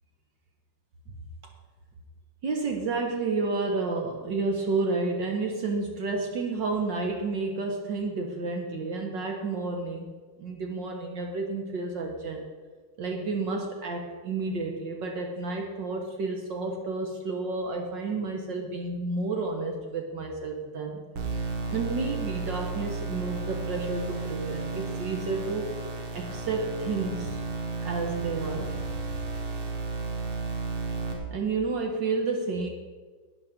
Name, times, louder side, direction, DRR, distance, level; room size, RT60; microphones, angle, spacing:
voice 1, 2.4-10.1 10.4-12.4 13.0-21.0 21.3-25.7 26.1-27.4 27.8-28.8 31.3-32.7, right 3 dB, 60° right, 2 dB, 1.7 m, -31 dB
sound 1, 21.2-31.1, right 3 dB, 75° right, 2.7 m, -33 dB
12.0 x 8.9 x 5.1 m, 1.4 s
omnidirectional pair, 2.4 m